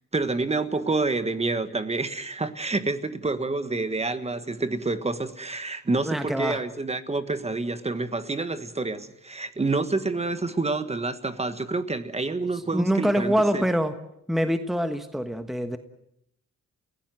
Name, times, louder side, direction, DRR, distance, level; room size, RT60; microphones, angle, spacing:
voice 1, 0.1-13.6, right 3 dB, 20° right, 11 dB, 1.5 m, -28 dB
voice 2, 6.0-6.6 12.7-13.9 14.3-15.8, equal, ahead, 8 dB, 1.3 m, -25 dB
30.0 x 17.0 x 7.6 m, 0.79 s
cardioid pair, 90°, 30 cm